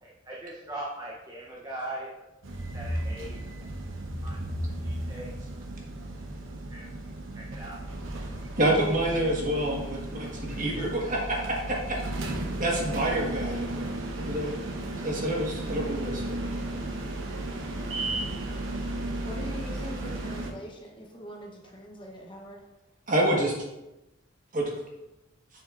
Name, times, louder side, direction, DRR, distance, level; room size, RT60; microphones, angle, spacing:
voice 1, 0.0-2.1 2.7-3.4 4.2-4.4 4.8-5.3 6.7-6.9 7.3-7.8, right 1 dB, 20° right, -3 dB, 0.8 m, -39 dB
sound 1, 2.4-20.5, right 1 dB, 80° right, 0.9 m, -34 dB
voice 2, 8.6-12.0 12.6-13.9 14.2-14.5 15.0-16.4 23.1-23.6 24.5-24.7, right 1 dB, 40° right, -2 dB, 1.4 m, -27 dB
voice 3, 19.2-22.6, equal, 25° left, -1 dB, 0.9 m, -42 dB
7.2 x 6.5 x 2.5 m, 0.96 s
head